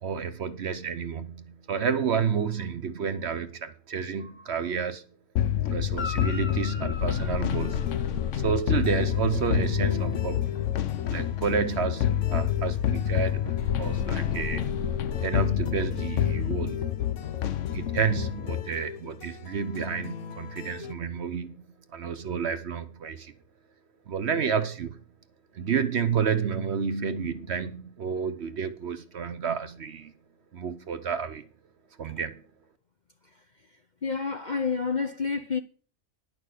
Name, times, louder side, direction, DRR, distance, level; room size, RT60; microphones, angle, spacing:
voice 1, 0.0-5.0 5.7-7.8 8.3-10.5 11.1-14.7 15.2-16.9 17.7-23.3 24.1-25.0 25.5-30.1 30.5-31.5 32.0-32.4, right 6 dB, 55° right, 0.9 m, -30 dB
sound 1, 5.4-18.7, left 11 dB, 65° left, 1.0 m, -28 dB
Guitar, 5.9-8.5 12.3-12.4, left 4 dB, 20° left, 1.0 m, -40 dB
sound 2, 7.6-20.9, left 6 dB, 80° left, 1.3 m, -41 dB
voice 2, 34.0-35.6, left 5 dB, 45° left, 0.6 m, -28 dB
10.5 x 6.1 x 6.6 m
omnidirectional pair, 1.5 m